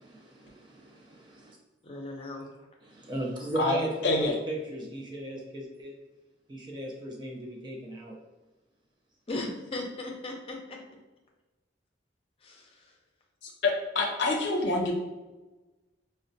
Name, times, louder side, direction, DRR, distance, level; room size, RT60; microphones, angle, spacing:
voice 1, 0.0-1.6 2.8-6.0 6.5-8.2, right 1 dB, 25° right, -1 dB, 0.4 m, -36 dB
voice 2, 1.8-2.5 9.3-10.6 12.4-12.9, left 2 dB, 30° left, 0 dB, 0.5 m, -37 dB
voice 3, 13.4-14.9, left 2 dB, 75° left, 1 dB, 0.5 m, -26 dB
4.9 x 2.1 x 2.6 m, 1.2 s
head